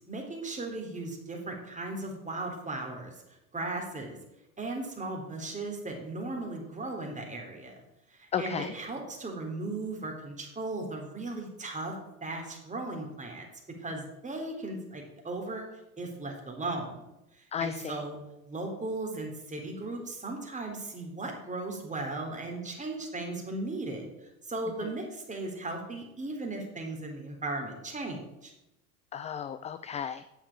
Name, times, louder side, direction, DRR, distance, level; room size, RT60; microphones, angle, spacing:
voice 1, 0.1-3.1 3.5-4.2 4.6-7.8 8.1-12.0 12.2-13.5 13.8-15.6 16.0-17.1 17.3-18.2 18.5-28.5, right 2 dB, 15° right, 1 dB, 3.8 m, -37 dB
voice 2, 8.3-8.7 17.5-18.0 29.1-30.2, left 8 dB, 15° left, 12 dB, 0.4 m, -34 dB
10.5 x 7.2 x 7.3 m, 0.90 s
hypercardioid pair, 85°, 45 cm